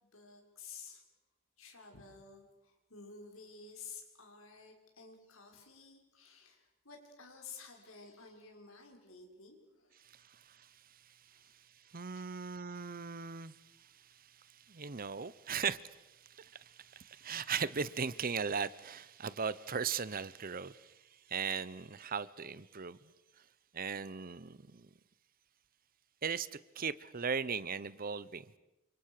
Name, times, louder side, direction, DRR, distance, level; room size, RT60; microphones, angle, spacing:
voice 1, 0.1-1.0 1.6-10.0 11.3-11.4 12.1-12.2, left 5 dB, 75° left, 6.5 m, -53 dB
voice 2, 10.0-11.4 11.9-20.9 21.3-23.0 23.7-24.9 26.2-28.5, right 6 dB, 45° right, 0.9 m, -39 dB
29.5 x 27.5 x 6.8 m
head